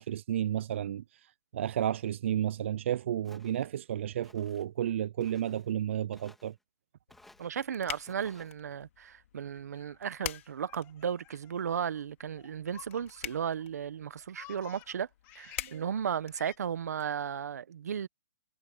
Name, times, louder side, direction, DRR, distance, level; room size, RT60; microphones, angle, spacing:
voice 1, 0.0-6.5 15.6-15.9, right 11 dB, 45° right, 0.4 m, -32 dB
Walk footsteps, 3.2-3.7 4.2-4.7 5.2-5.7 6.1-6.5 7.1-7.5 8.0-8.5, left 1 dB, ahead, 3.1 m, -58 dB
sound 1, 7.1-17.0, left 11 dB, 45° left, 2.5 m, -47 dB
voice 2, 7.4-15.1 15.3-18.1, right 8 dB, 65° right, 1.2 m, -35 dB
Laughter, 9.5-13.6 13.9-15.8 16.3-16.6, left 21 dB, 20° left, 2.8 m, -55 dB
hypercardioid pair, 165°, 9 cm